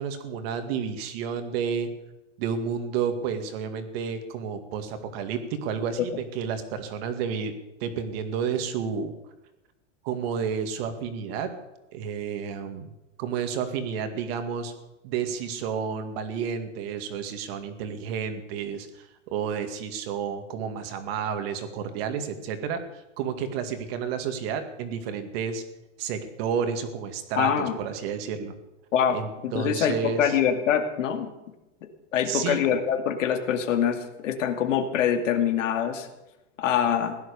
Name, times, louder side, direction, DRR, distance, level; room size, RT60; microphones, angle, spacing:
voice 1, 0.0-1.9 2.4-7.5 7.8-9.1 10.0-11.5 11.9-12.9 13.2-14.7 15.0-22.8 23.2-25.6 26.0-28.5 29.1-30.4 32.3-32.6, right 7 dB, 50° right, 7 dB, 2.3 m, -31 dB
voice 2, 27.4-27.8 28.9-31.3 32.1-36.1 36.6-37.2, left 8 dB, 80° left, 7 dB, 2.4 m, -24 dB
16.5 x 11.0 x 6.8 m, 1.0 s
supercardioid pair, 145°, 37 cm